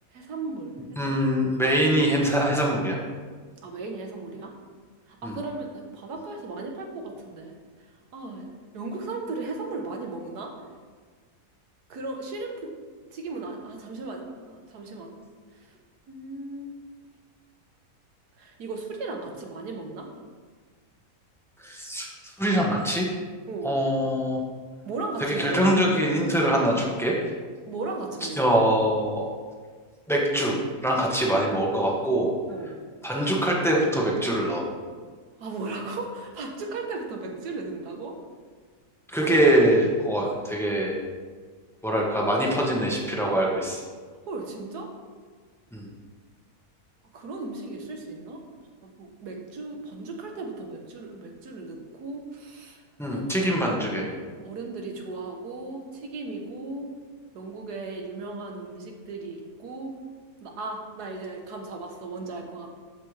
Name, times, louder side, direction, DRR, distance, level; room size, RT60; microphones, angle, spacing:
voice 1, 0.1-1.2 3.6-4.5 5.1-7.6 8.1-8.5 8.7-10.5 11.9-12.7 13.1-15.2 15.5-15.7 16.1-16.8 18.4-20.1 23.5-23.7 24.9-25.9 26.6-26.7 27.6-28.4 32.5-32.7 35.4-38.2 44.3-44.9 47.1-48.4 48.8-52.8 53.1-53.5 54.2-56.9 57.3-60.0 60.4-62.8, right 3 dB, 90° right, 2 dB, 1.7 m, -36 dB
voice 2, 1.0-3.0 5.2-5.4 21.6-23.1 23.6-24.4 25.2-27.2 28.4-29.3 30.1-32.3 33.0-34.6 39.1-41.0 41.8-43.8 45.7-45.9 53.0-54.1, right 1 dB, ahead, -3 dB, 1.2 m, -23 dB
13.5 x 5.6 x 3.4 m, 1.6 s
omnidirectional pair, 1.6 m